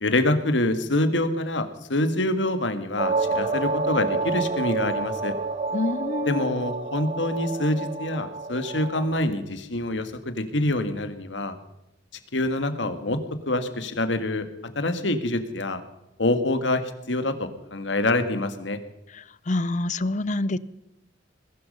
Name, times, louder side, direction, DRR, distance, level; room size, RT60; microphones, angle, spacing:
voice 1, 0.0-5.4 6.3-11.6 12.3-14.5 14.8-15.8 16.2-18.8, left 1 dB, 75° left, 10 dB, 1.7 m, -26 dB
sound 1, 3.0-9.2, right 3 dB, 40° right, 1.6 m, -29 dB
voice 2, 5.7-6.5 19.5-20.6, left 2 dB, 40° left, 18 dB, 0.6 m, -26 dB
20.5 x 12.0 x 5.5 m, 0.91 s
head